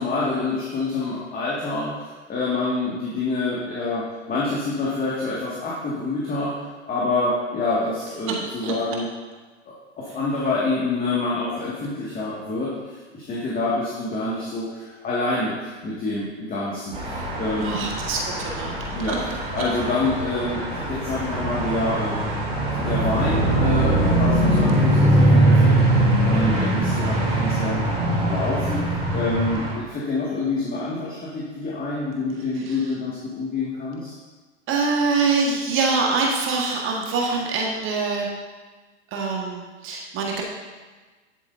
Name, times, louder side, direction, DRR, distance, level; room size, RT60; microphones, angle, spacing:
voice 1, 0.0-9.1 9.7-17.9 18.9-22.4 22.8-25.7 26.2-27.9 28.2-28.8 29.1-34.1, left 2 dB, 25° left, -7 dB, 2.0 m, -27 dB
sound 1, 16.9-29.7, right 1 dB, 15° right, 2.7 m, -21 dB
voice 2, 17.6-18.8 19.1-19.2 32.7-32.8 34.7-38.3 39.1-40.4, right 4 dB, 35° right, -1 dB, 1.6 m, -24 dB
11.0 x 7.4 x 2.7 m, 1.3 s
hypercardioid pair, 100°, 36 cm